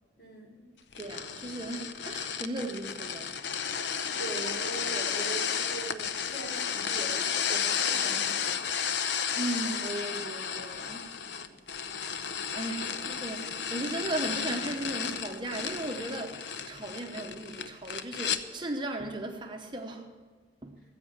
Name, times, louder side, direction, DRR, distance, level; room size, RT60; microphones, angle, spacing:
voice 1, 0.2-0.6 4.2-8.6 11.3-11.6 12.8-12.9, right 3 dB, 55° left, 3.5 m, -41 dB
sound 1, 0.9-18.4, left 7 dB, 75° left, 0.7 m, -33 dB
voice 2, 1.0-3.4 9.3-11.0 12.5-20.1 20.6-20.7, right 2 dB, 25° right, 0.8 m, -36 dB
15.0 x 8.1 x 7.4 m
head